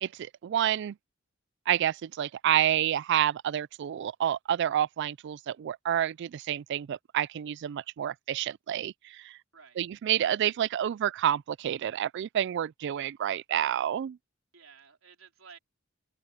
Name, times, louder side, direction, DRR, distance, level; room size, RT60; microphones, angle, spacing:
voice 1, 0.0-1.0 1.7-9.4 9.8-14.2, right 10 dB, 60° right, 0.3 m, -29 dB
voice 2, 9.5-9.8 14.5-15.6, right 6 dB, 80° right, 3.8 m, -53 dB
open air
head